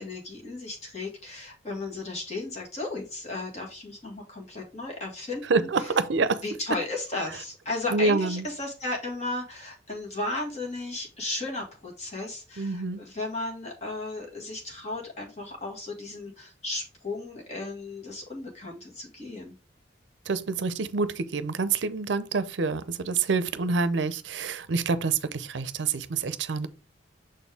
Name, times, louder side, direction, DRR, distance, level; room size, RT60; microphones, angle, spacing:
voice 1, 0.0-5.7 6.4-19.6, left 2 dB, 35° left, 1.9 m, -35 dB
voice 2, 5.5-6.4 7.9-8.5 12.6-13.0 20.3-26.7, right 4 dB, 75° right, 0.6 m, -27 dB
6.4 x 4.3 x 3.4 m
head